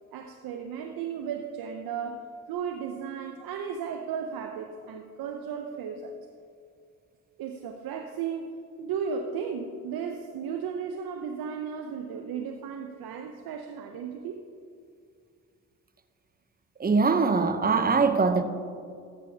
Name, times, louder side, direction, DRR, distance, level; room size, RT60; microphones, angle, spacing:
voice 1, 0.1-2.2 2.5-6.3 7.4-14.4, right 6 dB, 70° right, 0.7 m, -35 dB
voice 2, 16.8-18.4, right 4 dB, 25° right, 0.8 m, -22 dB
13.5 x 8.2 x 2.8 m
hypercardioid pair, 45°, 37 cm